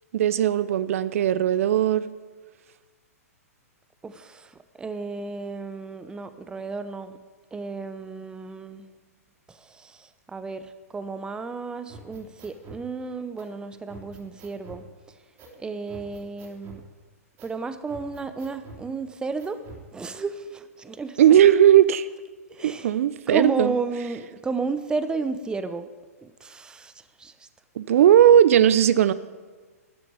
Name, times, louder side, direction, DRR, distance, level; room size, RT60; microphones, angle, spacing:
voice 1, 0.1-2.1 21.2-22.1 22.6-23.7 27.8-29.1, right 10 dB, 60° right, 16 dB, 0.6 m, -17 dB
voice 2, 4.0-7.2 7.5-8.9 9.5-14.8 15.6-16.8 17.4-19.6 19.9-21.2 22.5-22.9 23.3-25.9 26.2-27.5, right 4 dB, 10° right, 11 dB, 0.8 m, -33 dB
sound 1, 11.9-12.8 13.4-13.5 13.9-14.8 15.4-15.6 15.9-16.8 17.4-17.6 17.9-18.8 19.4-19.8, right 3 dB, 30° right, 3.5 m, -45 dB
13.0 x 7.5 x 9.5 m, 1.4 s
hypercardioid pair, 125°, 8 cm